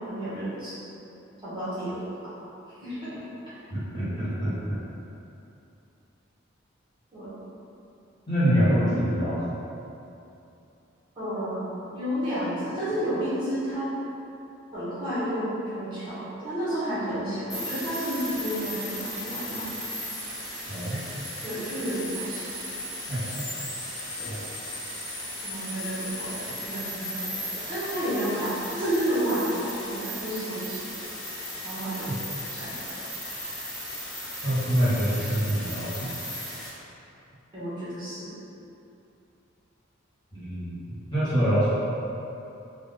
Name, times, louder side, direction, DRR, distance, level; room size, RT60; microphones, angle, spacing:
voice 1, 0.1-0.8 1.4-2.0 2.8-3.1 7.1-7.3 11.1-11.7 11.9-13.9 14.7-19.7 21.4-22.5 24.2-24.4 25.4-30.8 31.6-32.1 32.5-32.7 37.5-38.4, equal, 25° right, -13 dB, 1.4 m, -31 dB
voice 2, 3.7-4.8 8.3-9.6 20.7-21.0 23.1-23.4 24.2-24.4 34.4-36.1 40.3-41.7, equal, 20° left, -14 dB, 1.2 m, -25 dB
sound 1, 17.5-36.7, equal, 70° left, 1.4 m, -36 dB
3.7 x 2.7 x 3.3 m, 2.8 s
head